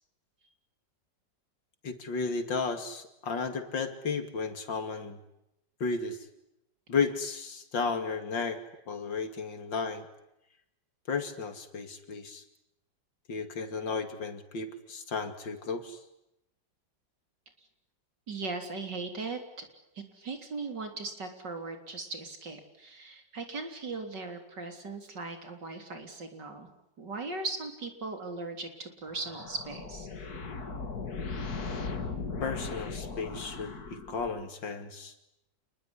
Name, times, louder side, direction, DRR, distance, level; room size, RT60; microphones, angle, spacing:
voice 1, 1.8-5.2 5.8-6.3 6.9-8.6 8.9-10.1 11.1-12.4 13.3-16.0 32.4-35.1, left 4 dB, 90° left, 8 dB, 3.2 m, -33 dB
voice 2, 18.3-19.7 20.0-26.7 27.0-30.1, right 3 dB, 70° right, 6 dB, 4.2 m, -38 dB
sound 1, 29.1-34.5, left 4 dB, 55° left, 2.8 m, -38 dB
28.5 x 21.0 x 9.9 m, 0.86 s
omnidirectional pair, 2.0 m